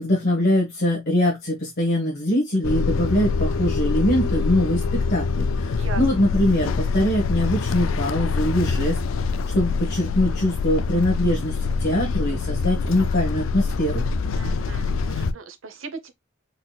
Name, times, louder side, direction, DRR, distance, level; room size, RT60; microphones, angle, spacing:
voice 1, 0.0-14.1, left 1 dB, 50° left, 1.3 m, -23 dB
sound 1, 2.6-15.3, left 4 dB, 70° left, 0.4 m, -25 dB
voice 2, 14.4-16.1, right 4 dB, 70° right, 0.9 m, -37 dB
4.0 x 3.9 x 2.3 m
head